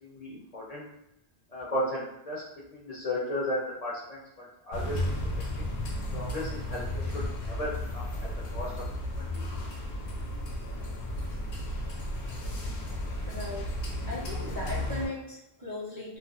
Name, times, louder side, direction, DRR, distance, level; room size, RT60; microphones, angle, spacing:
voice 1, 0.0-0.8 1.5-2.4 2.7-4.2 4.6-5.0 6.1-8.7 9.1-9.3, left 1 dB, 50° left, -6 dB, 0.5 m, -34 dB
sound 1, 4.7-15.1, left 1 dB, 80° left, 0.8 m, -34 dB
voice 2, 13.2-13.7 14.1-16.2, left 1 dB, 30° right, -7 dB, 0.4 m, -37 dB
2.4 x 2.2 x 2.3 m, 0.83 s
omnidirectional pair, 1.0 m